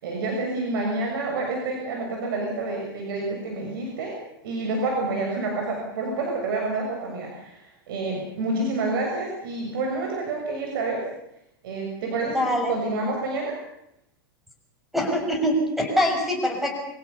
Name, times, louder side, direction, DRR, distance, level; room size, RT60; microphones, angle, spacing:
voice 1, 0.0-4.2 4.4-7.6 7.9-11.1 11.6-13.6, right 2 dB, 70° right, 0 dB, 6.9 m, -28 dB
voice 2, 12.3-12.7 14.9-16.7, equal, ahead, 3 dB, 6.2 m, -23 dB
25.0 x 16.5 x 7.1 m, 0.80 s
supercardioid pair, 135°, 12 cm